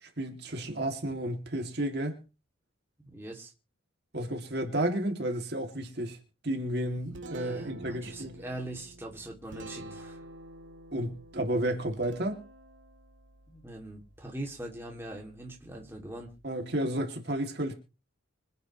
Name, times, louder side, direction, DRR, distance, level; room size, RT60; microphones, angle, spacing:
voice 1, 0.0-2.1 4.1-6.2 6.4-8.4 10.9-12.4 16.4-17.7, right 1 dB, 55° right, 2.6 m, -32 dB
voice 2, 3.0-3.5 7.3-10.2 13.5-16.3, right 1 dB, 10° right, 2.7 m, -42 dB
Guitar, 6.7-16.5, right 1 dB, 75° right, 1.8 m, -49 dB
25.5 x 9.4 x 3.2 m
head